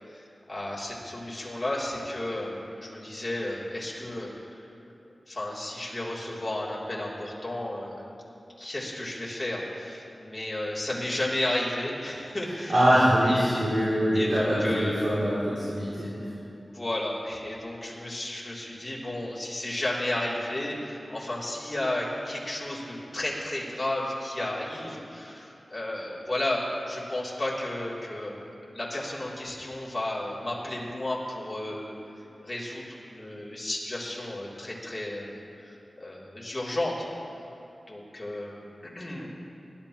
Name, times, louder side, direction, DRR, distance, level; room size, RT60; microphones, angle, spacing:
voice 1, 0.1-4.7 5.3-8.0 8.6-13.6 14.1-15.0 16.7-32.0 32.4-37.0 37.9-39.3, left 1 dB, 25° left, -6 dB, 3.0 m, -33 dB
voice 2, 12.7-16.1, equal, 65° right, -9 dB, 3.0 m, -23 dB
20.5 x 11.5 x 3.0 m, 2.8 s
wide cardioid pair, 75°, 0 cm